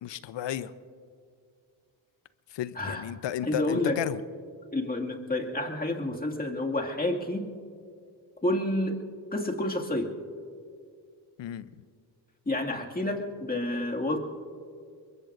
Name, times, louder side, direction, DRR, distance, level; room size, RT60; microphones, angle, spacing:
voice 1, 0.0-0.7 2.5-4.2 11.4-11.7, left 11 dB, 65° left, 15 dB, 0.8 m, -33 dB
voice 2, 3.4-4.0 4.7-7.6 8.4-9.0 9.3-10.1 12.5-14.2, left 1 dB, 20° left, 1 dB, 2.2 m, -29 dB
24.0 x 22.0 x 2.6 m, 2.2 s
supercardioid pair, 50°, 46 cm